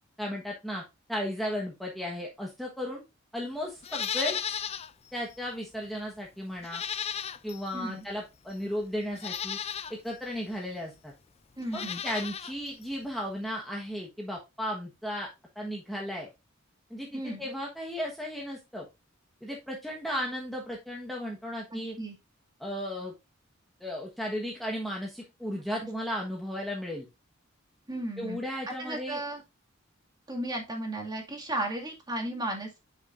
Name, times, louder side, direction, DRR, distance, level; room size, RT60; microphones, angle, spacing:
voice 1, 0.2-0.8 1.1-3.0 3.3-4.6 5.1-6.8 7.4-9.6 9.9-11.1 11.7-15.3 15.5-16.3 16.9-18.8 19.4-22.0 22.6-23.1 23.8-27.1 28.2-29.2, equal, ahead, -2 dB, 1.3 m, -35 dB
Livestock farm animals working animals, 3.8-4.9 5.3-5.4 6.6-7.7 8.5-8.6 9.1-9.9 11.6-12.5 12.8-12.9, left 8 dB, 30° left, 0.4 m, -34 dB
voice 2, 7.7-8.1 11.6-12.0 17.1-17.5 21.7-22.2 25.7-25.9 27.9-28.4 28.7-29.4 30.3-32.8, right 1 dB, 20° right, 1 dB, 2.1 m, -35 dB
8.3 x 6.5 x 2.5 m, 0.24 s
head